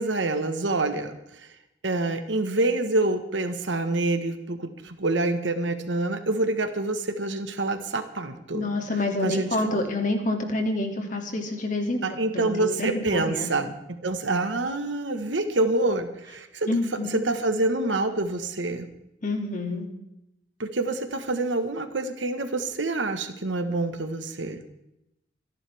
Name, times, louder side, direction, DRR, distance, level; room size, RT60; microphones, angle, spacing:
voice 1, 0.0-1.5 1.8-8.7 9.2-9.9 12.0-13.7 14.0-16.7 17.0-18.9 20.6-24.6, right 2 dB, 80° right, 7 dB, 1.4 m, -27 dB
voice 2, 8.5-12.0 12.3-13.5 16.7-17.2 19.2-19.9, left 2 dB, 45° left, 3 dB, 2.5 m, -28 dB
26.0 x 11.0 x 3.6 m, 0.85 s
head